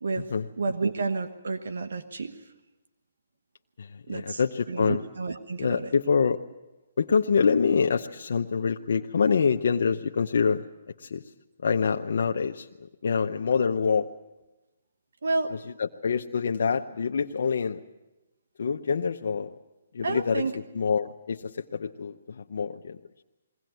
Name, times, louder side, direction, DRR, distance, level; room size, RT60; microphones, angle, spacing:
voice 1, 0.6-2.4 4.1-5.9 9.3-9.4 15.2-15.5 20.0-20.5, right 3 dB, 80° right, 9 dB, 1.3 m, -30 dB
voice 2, 4.1-5.0 5.6-6.4 7.0-10.6 11.0-11.2 11.6-12.7 13.0-14.1 15.8-17.8 18.6-19.5 19.9-20.4 20.7-21.4 21.7-23.0, left 6 dB, 70° left, 4 dB, 0.8 m, -25 dB
22.0 x 17.5 x 9.2 m, 1.1 s
hypercardioid pair, 155°, 0 cm